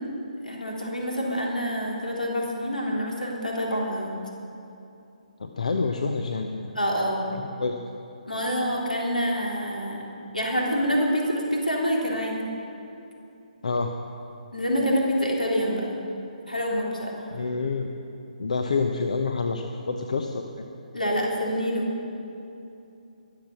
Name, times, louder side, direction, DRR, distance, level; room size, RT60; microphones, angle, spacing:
voice 1, 0.4-4.2 6.7-7.2 8.3-10.0 10.3-12.5 14.5-15.9 16.5-17.3 20.9-21.9, equal, 85° left, -2 dB, 4.0 m, -26 dB
voice 2, 5.4-6.7 7.4-7.8 13.6-13.9 17.3-17.9 18.4-20.6, left 4 dB, 60° left, 5 dB, 0.9 m, -28 dB
22.0 x 7.8 x 7.2 m, 2.8 s
figure-of-eight pair, 140°, 4 cm